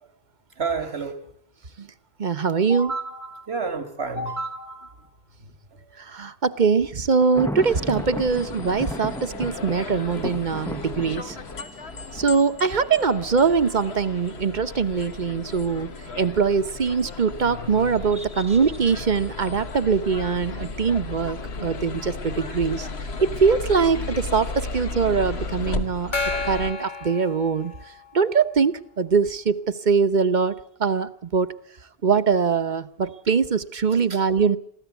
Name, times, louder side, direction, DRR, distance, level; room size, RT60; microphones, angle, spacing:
voice 1, 0.6-1.2 2.7-5.1 16.1-16.2 18.2-18.6 34.1-34.2, right 4 dB, 90° right, 8 dB, 2.4 m, -31 dB
voice 2, 2.2-2.9 6.0-11.4 12.1-15.9 16.2-22.9 23.2-26.2 26.4-27.7 28.1-30.5 30.8-31.5 32.0-34.6, right 5 dB, 50° right, 12 dB, 1.1 m, -22 dB
Thunder, 7.2-13.0, equal, 5° left, 0.6 m, -35 dB
sound 1, 7.6-26.7, left 3 dB, 85° left, 1.6 m, -35 dB
Gong, 26.1-28.2, left 3 dB, 50° left, 1.3 m, -31 dB
22.5 x 15.5 x 8.2 m, 0.67 s
omnidirectional pair, 1.0 m